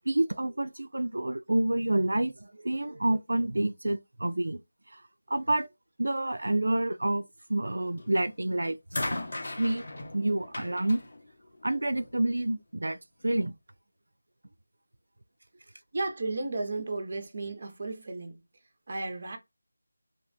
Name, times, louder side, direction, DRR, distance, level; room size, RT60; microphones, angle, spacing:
voice 1, 0.1-4.6 4.9-5.0 5.3-5.7 6.0-9.0 9.6-9.8 10.1-11.0 11.6-13.0 13.2-13.5, right 1 dB, 85° right, 0.4 m, -28 dB
sound 1, 8.0-8.3 8.9-12.2 13.2-13.3, left 1 dB, 50° left, 0.8 m, -38 dB
voice 2, 15.9-18.4 18.9-19.4, right 3 dB, 35° right, 0.6 m, -34 dB
2.9 x 2.2 x 2.5 m
figure-of-eight pair, 175°, 0 cm